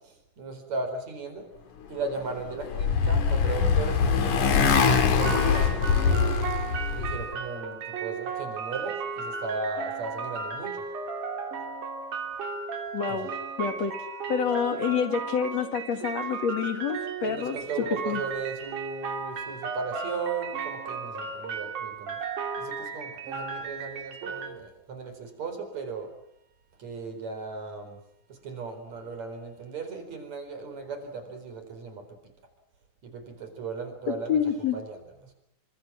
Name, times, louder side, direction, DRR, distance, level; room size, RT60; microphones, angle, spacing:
voice 1, 0.4-1.4 1.9-6.3 6.9-10.8 13.1-13.3 17.2-22.1 22.6-26.1 26.8-28.0 28.4-32.0 33.0-34.4 34.7-35.0, right 4 dB, 65° right, 7 dB, 5.6 m, -36 dB
Motorcycle, 2.2-7.2, left 6 dB, 75° left, 3.7 m, -23 dB
sound 1, 5.2-24.5, right 5 dB, 90° right, 4.6 m, -35 dB
voice 2, 12.9-13.3 13.6-14.0 14.3-17.6 18.1-18.2 34.1-34.8, left 7 dB, 60° left, 7 dB, 3.1 m, -27 dB
28.5 x 25.0 x 6.1 m, 0.73 s
omnidirectional pair, 3.4 m